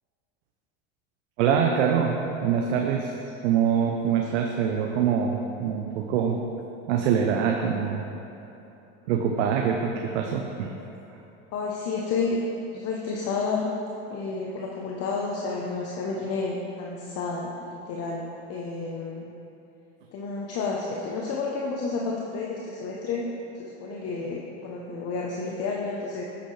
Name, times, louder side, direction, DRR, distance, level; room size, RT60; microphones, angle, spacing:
voice 1, 1.4-2.1 2.4-3.1 3.4-6.4 6.9-8.0 9.1-10.7, right 7 dB, 80° right, 2 dB, 0.8 m, -24 dB
voice 2, 11.5-12.4 12.7-13.7 14.1-19.3 20.1-23.3 23.5-26.2, left 4 dB, 45° left, -2 dB, 1.0 m, -31 dB
9.9 x 8.3 x 3.3 m, 2.9 s
supercardioid pair, 100°, 35 cm